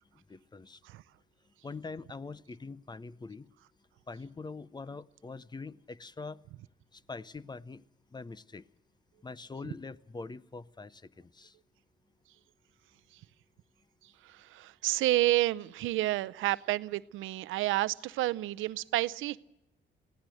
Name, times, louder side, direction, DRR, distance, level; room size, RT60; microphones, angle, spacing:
voice 1, 0.1-0.8 1.6-3.5 4.1-6.4 6.9-7.8 8.1-8.6 9.2-11.6, left 4 dB, 20° left, 0.6 m, -44 dB
voice 2, 14.2-19.4, right 16 dB, 85° right, 0.6 m, -30 dB
25.5 x 16.5 x 6.2 m
cardioid pair, 90°, 20 cm